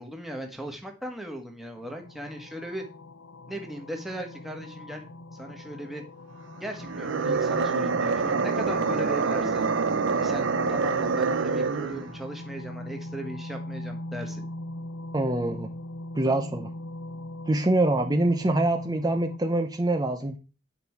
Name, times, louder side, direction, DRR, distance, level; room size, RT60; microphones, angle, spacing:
voice 1, 0.0-2.8 3.5-5.0 5.3-6.0 6.6-9.7 10.1-14.5, right 1 dB, ahead, 2 dB, 1.5 m, -37 dB
sound 1, 1.8-19.4, left 1 dB, 80° left, 0.6 m, -40 dB
sound 2, 6.8-12.1, right 4 dB, 70° right, 0.6 m, -26 dB
voice 2, 15.1-15.7 16.1-16.7 17.5-20.4, right 2 dB, 20° right, 7 dB, 0.6 m, -25 dB
9.3 x 5.2 x 4.6 m, 0.33 s
head